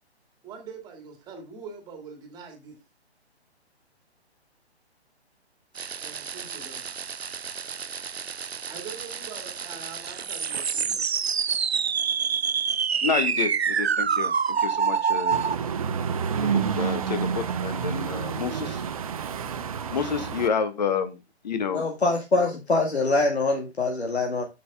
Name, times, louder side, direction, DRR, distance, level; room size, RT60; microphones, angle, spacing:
voice 1, 0.4-2.8 6.0-7.0 8.7-11.1, right 5 dB, 10° right, 4 dB, 2.1 m, -43 dB
sound 1, 5.8-15.5, right 7 dB, 70° right, 0.6 m, -27 dB
voice 2, 13.0-14.3 14.6-15.4 16.5-18.8 19.9-21.1 21.4-21.9, left 6 dB, 40° left, 11 dB, 1.4 m, -29 dB
sound 2, 15.3-20.5, right 7 dB, 30° right, 0.8 m, -29 dB
voice 3, 21.7-24.4, left 3 dB, 70° left, 2 dB, 2.1 m, -24 dB
8.3 x 7.6 x 3.6 m, 0.24 s
figure-of-eight pair, 135°, 33 cm